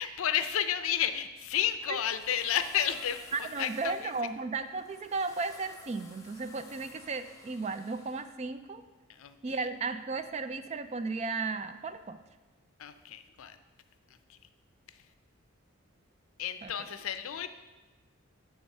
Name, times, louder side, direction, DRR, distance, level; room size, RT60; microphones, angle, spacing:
voice 1, 0.0-4.1 9.2-9.7 12.8-13.6 14.3-14.4 16.4-17.5, left 9 dB, 70° left, 10 dB, 0.5 m, -32 dB
sound 1, 1.5-8.3, left 3 dB, 15° left, 0.7 m, -54 dB
voice 2, 3.3-8.8 9.4-12.2 16.6-16.7, right 4 dB, 30° right, 11 dB, 0.3 m, -35 dB
10.5 x 3.5 x 6.4 m, 1.2 s
head